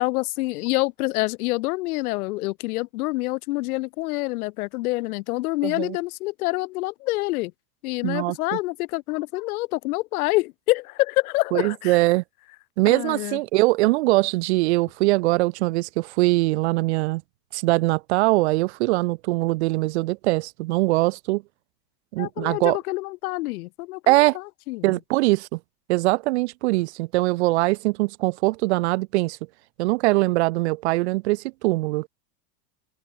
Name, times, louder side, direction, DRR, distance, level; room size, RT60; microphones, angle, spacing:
voice 1, 0.0-7.5 7.8-12.0 12.9-13.4 22.2-24.9, left 21 dB, 65° left, 0.6 m, -27 dB
voice 2, 5.6-6.0 8.0-8.6 11.5-12.2 12.8-17.2 17.5-21.4 22.1-22.8 24.1-24.4 24.8-25.6 25.9-29.4 29.8-32.1, right 21 dB, 45° right, 0.5 m, -22 dB
open air
supercardioid pair, 175°, 48 cm